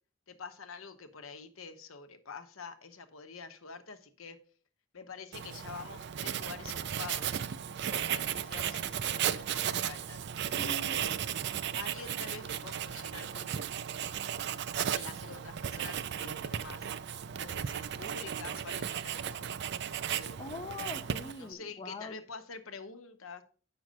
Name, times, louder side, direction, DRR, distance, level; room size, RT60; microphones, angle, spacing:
voice 1, 0.3-4.4 4.9-7.4 7.8-10.3 10.9-11.5 11.8-13.8 14.8-16.9 17.4-19.5 20.1-20.6 21.4-23.4, left 4 dB, 80° left, 1.0 m, -47 dB
Writing, 5.3-21.5, right 9 dB, 55° right, 0.4 m, -35 dB
voice 2, 10.6-11.0 20.4-22.2, left 3 dB, 25° left, 0.5 m, -42 dB
7.5 x 6.2 x 5.2 m
head